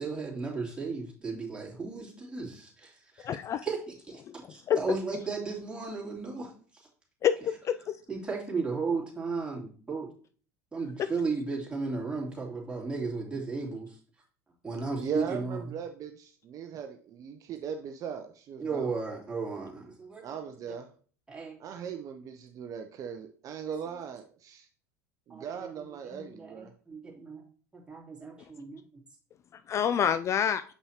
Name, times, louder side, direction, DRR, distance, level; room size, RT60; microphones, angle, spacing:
voice 1, 0.0-3.3 3.6-4.2 4.5-6.9 8.1-10.1 10.7-14.0 14.6-15.6 18.6-20.4 21.3-21.6 25.3-27.4 27.7-28.8, right 4 dB, 10° right, -4 dB, 2.9 m, -35 dB
voice 2, 3.2-3.6 4.3-4.4 4.7-4.8 7.2-8.0 11.0-11.1 29.7-30.6, left 9 dB, 35° left, 12 dB, 0.3 m, -27 dB
voice 3, 15.0-18.9 20.2-20.9 21.6-24.7 25.3-26.7, right 6 dB, 40° right, 6 dB, 0.6 m, -39 dB
7.3 x 5.5 x 2.8 m, 0.43 s
hypercardioid pair, 80°, 8 cm